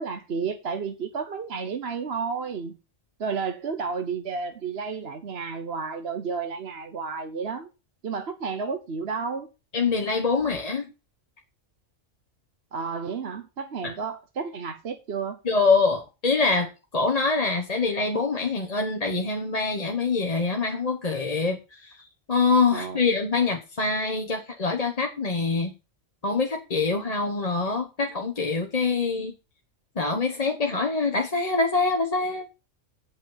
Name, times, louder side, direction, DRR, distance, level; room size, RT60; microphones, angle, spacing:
voice 1, 0.0-2.7 3.2-7.7 8.0-9.5 12.7-15.4 22.7-23.0, right 5 dB, 55° right, 1.2 m, -31 dB
voice 2, 9.7-10.9 15.4-21.9 22.3-25.7 26.2-29.3 30.0-32.5, left 4 dB, 30° left, 1.2 m, -25 dB
8.6 x 5.5 x 7.3 m
omnidirectional pair, 1.3 m